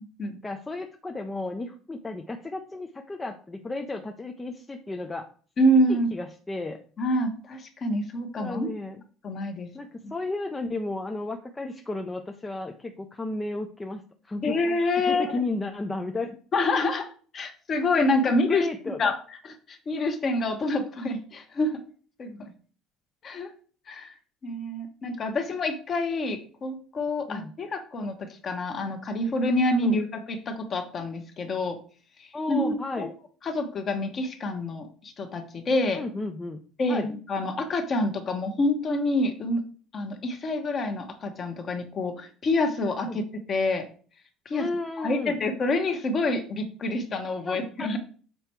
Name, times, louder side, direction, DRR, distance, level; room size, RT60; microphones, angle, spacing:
voice 1, 0.4-5.3 5.9-6.8 8.4-9.0 9.7-14.6 15.1-16.4 18.2-19.1 27.3-27.5 29.8-30.0 32.3-33.1 35.9-36.6 36.9-37.1 43.1-43.2 44.5-45.4 47.5-47.9, left 2 dB, 15° left, 4 dB, 0.5 m, -33 dB
voice 2, 5.6-6.1 7.0-8.7 9.2-9.7 10.0-10.1 14.4-15.4 16.5-17.1 17.3-18.7 19.0-19.2 19.4-21.8 22.2-22.5 23.2-23.5 23.9-24.1 24.4-31.8 32.2-33.1 33.4-36.0 36.8-39.6 39.9-43.9 44.4-44.7 45.0-48.0, left 1 dB, 30° left, 6 dB, 1.1 m, -27 dB
6.8 x 4.4 x 4.5 m, 0.42 s
cardioid pair, 150°, 0 cm